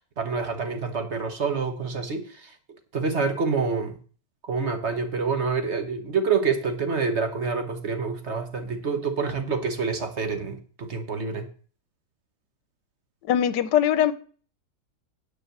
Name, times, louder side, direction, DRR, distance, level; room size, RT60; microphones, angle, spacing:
voice 1, 0.0-2.5 2.9-4.0 4.5-11.5, right 5 dB, 45° right, 1.2 m, -27 dB
voice 2, 13.3-14.1, left 10 dB, 85° left, 1.3 m, -21 dB
9.6 x 4.6 x 7.6 m
omnidirectional pair, 1.8 m